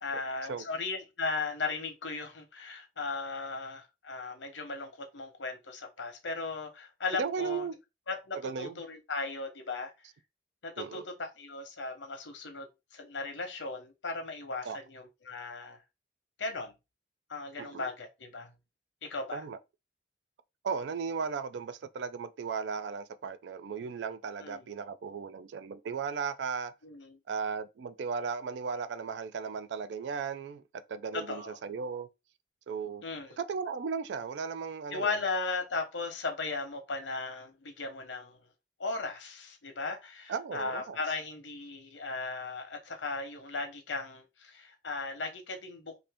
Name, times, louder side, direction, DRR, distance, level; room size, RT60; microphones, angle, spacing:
voice 1, 0.0-7.6 8.1-9.9 10.6-15.8 16.4-16.7 17.3-18.5 19.0-19.4 24.4-24.7 26.8-27.2 31.1-31.6 33.0-33.4 34.9-38.4 38.8-46.0, left 3 dB, 85° left, 0.9 m, -37 dB
voice 2, 7.2-7.8 8.4-8.8 10.8-11.1 14.6-14.8 17.6-17.9 19.3-19.6 20.6-26.7 27.3-30.6 30.9-32.1 32.7-33.0 33.4-35.2 40.3-41.0, right 5 dB, 65° right, 0.3 m, -36 dB
2.7 x 2.6 x 3.4 m
head